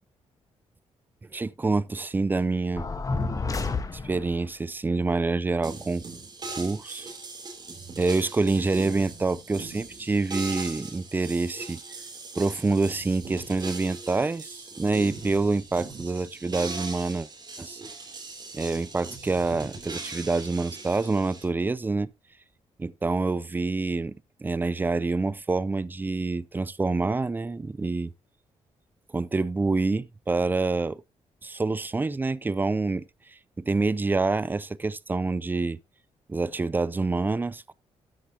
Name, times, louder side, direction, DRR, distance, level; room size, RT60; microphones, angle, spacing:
voice 1, 1.3-2.9 3.9-6.0 6.6-7.1 8.0-11.8 12.4-17.3 17.6-17.8 18.5-22.1 22.8-28.1 29.1-31.0 31.4-33.0 33.6-35.8 36.3-37.7, right 3 dB, 15° right, 0.5 m, -27 dB
sound 1, 2.8-4.4, left 3 dB, 30° left, 1.3 m, -30 dB
sound 2, 5.6-21.4, right 3 dB, 35° right, 3.1 m, -40 dB
13.0 x 7.9 x 2.8 m
cardioid pair, 110°, 12 cm